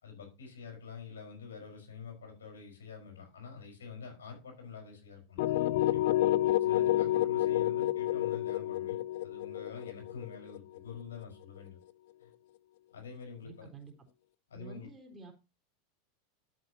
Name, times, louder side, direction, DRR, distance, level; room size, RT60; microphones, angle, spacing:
voice 1, 0.0-6.0 6.6-11.8 12.2-12.3 12.9-13.7 14.5-14.9, left 5 dB, 80° left, 3 dB, 5.2 m, -47 dB
sound 1, 5.4-11.2, left 14 dB, 65° left, 0.6 m, -29 dB
voice 2, 13.4-13.9 14.5-15.3, right 4 dB, 20° right, 3 dB, 4.1 m, -50 dB
13.0 x 7.4 x 2.9 m, 0.29 s
hypercardioid pair, 90°, 0 cm